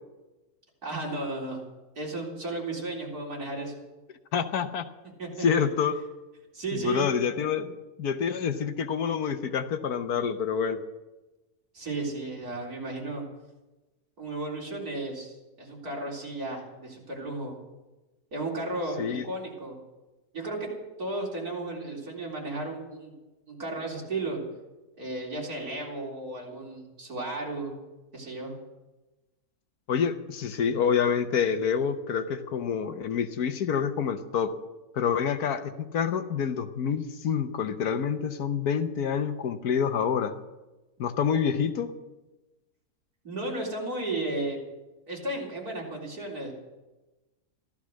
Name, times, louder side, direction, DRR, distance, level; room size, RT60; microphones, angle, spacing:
voice 1, 0.8-1.6 2.0-3.7 5.2-5.7 6.5-7.1 11.7-13.2 14.2-17.6 18.3-19.8 20.3-20.7 21.0-23.1 23.5-24.4 25.0-27.8 28.1-28.5 43.2-44.6 45.1-46.5, right 2 dB, 65° right, -2 dB, 4.4 m, -34 dB
voice 2, 4.3-4.8 5.4-6.0 6.7-7.7 8.0-10.8 19.0-19.2 29.9-34.5 34.9-40.3 41.0-41.9, left 7 dB, 70° left, 9 dB, 1.4 m, -27 dB
15.5 x 13.5 x 6.4 m, 1.1 s
omnidirectional pair, 1.7 m